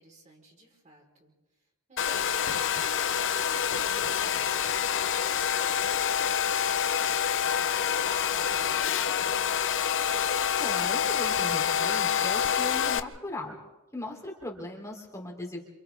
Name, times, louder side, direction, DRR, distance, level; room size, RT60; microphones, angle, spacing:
voice 1, 0.0-1.3 1.9-2.5 3.1-9.4, right 1 dB, 35° right, -1 dB, 4.5 m, -53 dB
Domestic sounds home sounds, 2.0-13.0, left 8 dB, 60° left, 0.8 m, -27 dB
voice 2, 10.3-13.6 13.9-15.6, left 1 dB, 15° left, -1 dB, 3.2 m, -38 dB
28.0 x 28.0 x 3.6 m, 1.0 s
head